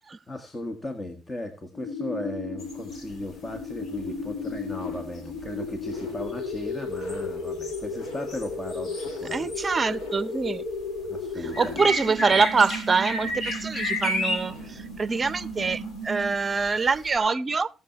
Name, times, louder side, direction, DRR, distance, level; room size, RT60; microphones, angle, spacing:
voice 1, 0.3-9.5 11.0-11.9, left 1 dB, 25° left, 1.5 m, -36 dB
sound 1, 1.7-16.6, left 2 dB, 75° left, 4.1 m, -35 dB
sound 2, 2.6-3.6 3.9-10.2 10.4-17.2, left 2 dB, 60° left, 2.8 m, -33 dB
voice 2, 9.3-10.6 11.4-17.7, right 4 dB, 35° right, 0.6 m, -25 dB
18.5 x 7.0 x 2.8 m
supercardioid pair, 60°, 0 cm